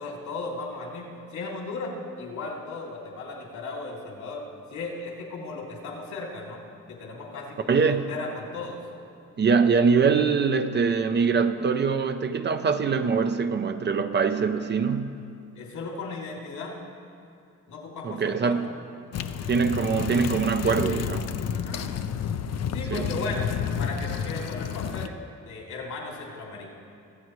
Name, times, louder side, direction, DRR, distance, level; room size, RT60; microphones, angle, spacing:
voice 1, 0.0-4.4 4.7-6.6 6.9-8.8 15.5-16.8 17.7-18.6 21.4-21.9 22.7-25.2 25.4-26.7, left 3 dB, 80° left, -2 dB, 2.8 m, -36 dB
voice 2, 7.7-8.1 9.4-15.1 18.0-18.7 19.5-21.4 22.9-23.1, right 5 dB, 35° right, 8 dB, 0.6 m, -23 dB
sound 1, 19.1-25.1, left 8 dB, 60° left, 0.6 m, -30 dB
22.5 x 8.0 x 3.1 m, 2.5 s
cardioid pair, 90°, 30 cm